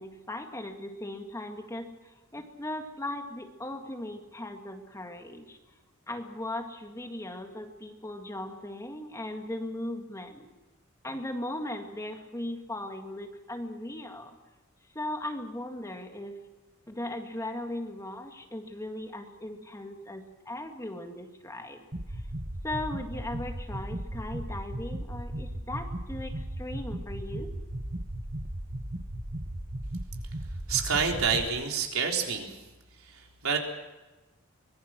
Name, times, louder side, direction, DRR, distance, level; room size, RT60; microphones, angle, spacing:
voice 1, 0.0-1.9 2.3-5.6 6.1-10.5 11.0-14.4 15.0-16.4 16.9-22.2 22.6-27.5, left 1 dB, 15° left, 4 dB, 1.9 m, -38 dB
sound 1, 21.9-31.5, right 1 dB, 40° right, 1.8 m, -36 dB
voice 2, 30.7-32.6 33.0-33.6, right 6 dB, 90° right, 1 dB, 3.8 m, -28 dB
24.0 x 20.0 x 6.3 m, 1.1 s
head